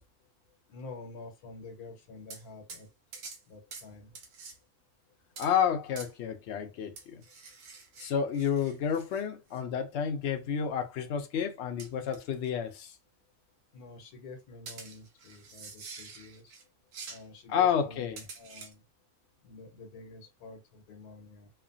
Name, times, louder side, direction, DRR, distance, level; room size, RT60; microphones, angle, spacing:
voice 1, 0.7-2.9 3.5-4.2 13.7-16.5 17.1-18.8 19.4-21.5, left 3 dB, 85° left, 1.3 m, -48 dB
sound 1, 2.3-2.4 2.7-2.8 3.1-3.4 3.7-3.9 4.1-4.6 5.4-5.5 6.0-6.1 7.0-9.2 9.5-9.6 11.8-12.2 12.4-12.5 14.7-16.6 16.9-17.2 18.2-18.7, right 4 dB, 80° right, 1.2 m, -46 dB
voice 2, 5.4-7.2 8.0-13.0 17.5-18.2, left 8 dB, 65° left, 0.7 m, -30 dB
3.2 x 2.2 x 2.5 m
omnidirectional pair, 1.6 m